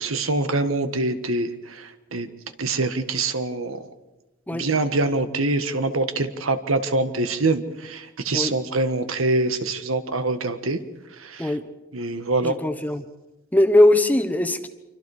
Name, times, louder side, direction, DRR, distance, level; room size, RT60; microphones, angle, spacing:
voice 1, 0.0-2.3 2.6-3.8 4.5-10.8 11.2-11.6 11.9-12.5, right 2 dB, 85° right, 9 dB, 1.6 m, -24 dB
voice 2, 12.4-13.0 13.5-14.7, left 1 dB, 10° left, 9 dB, 1.1 m, -19 dB
26.5 x 24.5 x 5.0 m, 1.0 s
head